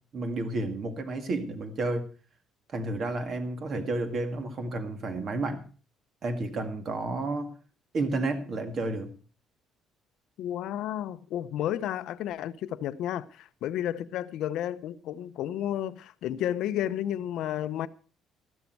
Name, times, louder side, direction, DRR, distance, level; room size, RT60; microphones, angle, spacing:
voice 1, 0.1-2.1 2.7-5.6 6.2-7.5 7.9-9.1, right 2 dB, 35° right, 2.0 m, -31 dB
voice 2, 10.4-17.9, left 11 dB, 65° left, 0.8 m, -32 dB
13.5 x 12.5 x 4.6 m
cardioid pair, 165°, 0 cm